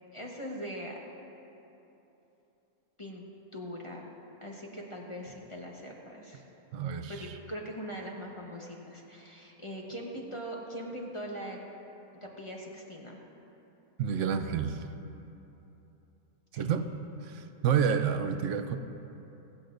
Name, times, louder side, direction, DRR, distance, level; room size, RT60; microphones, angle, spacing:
voice 1, 0.1-1.0 3.0-3.2 3.5-4.1 4.4-6.5 7.1-11.6 12.2-13.2 16.5-16.7, equal, 25° left, -2 dB, 1.0 m, -41 dB
voice 2, 6.7-7.3 14.0-14.9 16.5-16.9 17.2-18.8, right 7 dB, 65° right, 9 dB, 0.9 m, -29 dB
25.0 x 8.6 x 2.6 m, 3.0 s
omnidirectional pair, 1.5 m